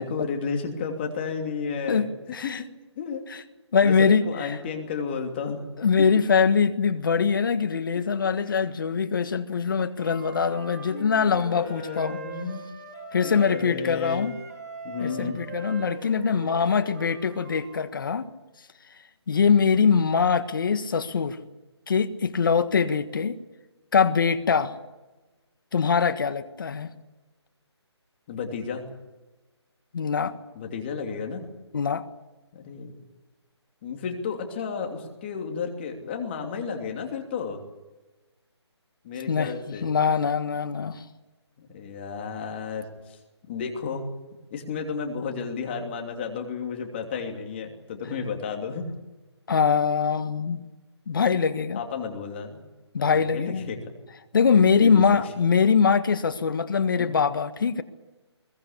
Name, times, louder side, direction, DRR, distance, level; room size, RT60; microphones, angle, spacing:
voice 1, 0.0-2.1 2.4-2.6 3.0-3.2 3.8-5.6 8.0-8.1 10.9-12.6 13.2-14.3 14.8-15.4 28.3-28.8 30.5-31.4 32.5-32.9 33.8-37.6 39.0-39.9 41.6-43.2 43.5-44.1 44.5-48.9 51.8-52.7 53.1-53.8 54.5-55.2 57.0-57.1, left 5 dB, 25° left, 3 dB, 2.9 m, -32 dB
voice 2, 1.9-2.6 3.3-3.4 3.7-4.6 5.8-12.2 13.1-14.3 15.0-18.3 19.3-21.4 21.9-23.4 23.9-24.7 25.7-26.9 29.9-30.3 31.7-32.0 39.3-41.0 49.5-50.6 51.1-51.8 52.9-53.6 54.3-57.8, left 6 dB, 50° left, 11 dB, 1.5 m, -23 dB
Wind instrument woodwind instrument, 9.9-13.7 14.0-17.9, right 3 dB, 35° right, 5.5 m, -42 dB
21.5 x 19.0 x 8.5 m, 1.1 s
hypercardioid pair, 165°, 15 cm